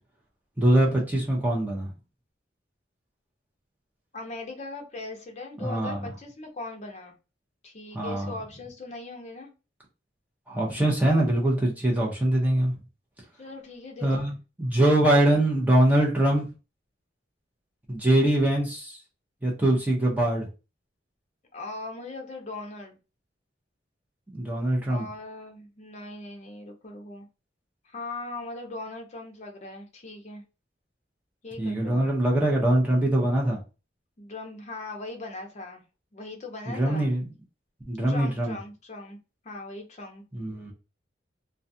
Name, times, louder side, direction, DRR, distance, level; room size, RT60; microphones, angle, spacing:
voice 1, 0.6-1.9 5.6-6.0 7.9-8.3 10.5-12.7 14.0-14.3 14.6-16.5 17.9-19.0 19.4-20.5 24.3-25.0 31.6-33.6 36.7-37.3 37.9-38.6 40.3-40.7, right 1 dB, 10° right, -3 dB, 0.6 m, -23 dB
voice 2, 4.1-7.1 7.6-9.5 13.4-14.3 21.5-23.0 24.9-27.3 27.9-30.4 31.4-32.1 34.2-35.8 36.1-37.1 38.1-39.2 39.4-40.2, left 2 dB, 40° left, 3 dB, 0.6 m, -39 dB
2.3 x 2.3 x 2.6 m, 0.31 s
head